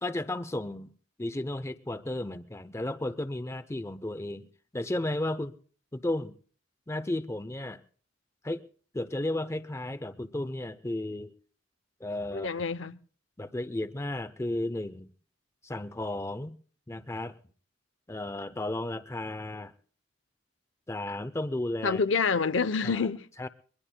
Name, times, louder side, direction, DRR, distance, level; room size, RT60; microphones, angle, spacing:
voice 1, 0.0-0.9 1.2-4.4 4.7-5.6 5.9-6.4 6.9-7.8 8.4-8.6 8.9-11.3 12.0-12.5 13.4-15.1 15.6-16.5 16.9-17.4 18.1-19.7 20.9-22.0 22.8-23.0 23.4-23.5, left 1 dB, 15° left, 0.6 m, -33 dB
voice 2, 12.3-13.0 21.8-23.3, left 5 dB, 85° left, 0.6 m, -27 dB
22.5 x 21.0 x 2.2 m
head